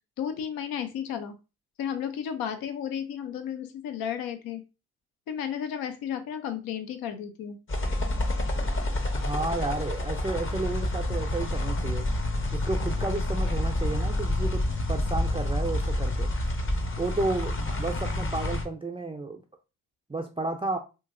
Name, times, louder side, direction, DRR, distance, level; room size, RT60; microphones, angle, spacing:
voice 1, 0.2-1.3 1.8-4.6 5.3-7.6, left 8 dB, 70° left, 8 dB, 0.6 m, -33 dB
sound 1, 7.7-18.6, left 1 dB, 35° left, 0.8 m, -28 dB
voice 2, 9.1-12.1 12.5-16.3 17.0-19.4 20.1-20.8, right 2 dB, 15° right, 3 dB, 0.4 m, -32 dB
2.8 x 2.7 x 2.5 m, 0.29 s
hypercardioid pair, 45°, 36 cm